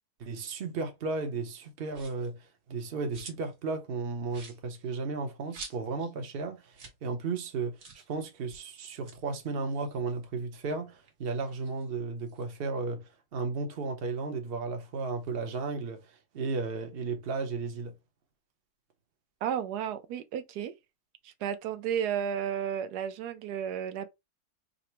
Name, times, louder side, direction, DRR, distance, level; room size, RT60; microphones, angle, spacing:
voice 1, 0.2-7.8 8.1-17.9, right 4 dB, 45° right, 0.9 m, -34 dB
sound 1, 1.9-2.3 2.7-3.6 3.9-4.0 4.3-6.1 6.4-6.5 6.7-7.0 7.3-7.4 7.8-8.1 8.8-10.6 11.0-12.5, right 4 dB, 75° right, 1.7 m, -49 dB
voice 2, 19.4-20.7 21.2-24.1, right 9 dB, 90° right, 1.2 m, -33 dB
3.9 x 2.1 x 4.4 m
omnidirectional pair, 1.7 m